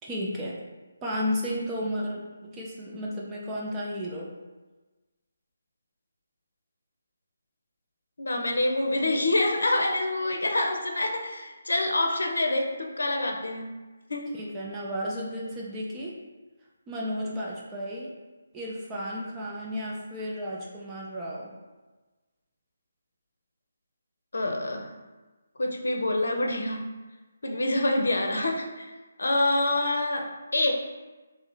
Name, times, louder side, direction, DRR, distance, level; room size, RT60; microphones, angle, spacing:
voice 1, 0.0-0.6 1.0-4.3 14.3-16.1 16.9-18.1 18.5-21.5, equal, 15° right, -4 dB, 0.5 m, -33 dB
voice 2, 8.2-13.8 14.1-14.3 24.3-24.9 25.6-26.9 27.4-28.9 29.2-30.7, left 2 dB, 65° left, 2 dB, 0.6 m, -26 dB
3.1 x 2.9 x 3.8 m, 1.2 s
figure-of-eight pair, 145°, 0 cm